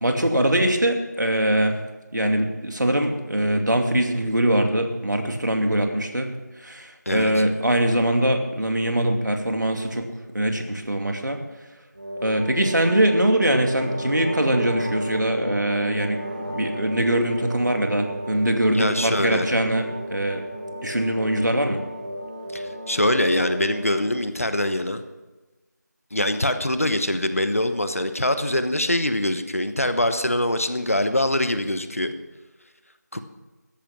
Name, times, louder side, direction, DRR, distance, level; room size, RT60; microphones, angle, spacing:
voice 1, 0.0-1.7 2.1-6.3 6.6-10.0 10.3-11.4 12.2-16.2 16.5-19.9 20.1-20.4 20.8-21.8, right 1 dB, 80° right, 4 dB, 2.5 m, -22 dB
voice 2, 7.1-7.4 18.7-19.5 22.5-25.0 26.1-32.1 33.1-33.2, left 1 dB, 50° left, 9 dB, 1.1 m, -23 dB
sound 1, 11.9-24.2, right 1 dB, 30° right, 1.9 m, -33 dB
14.0 x 10.5 x 6.0 m, 1.2 s
figure-of-eight pair, 180°, 10 cm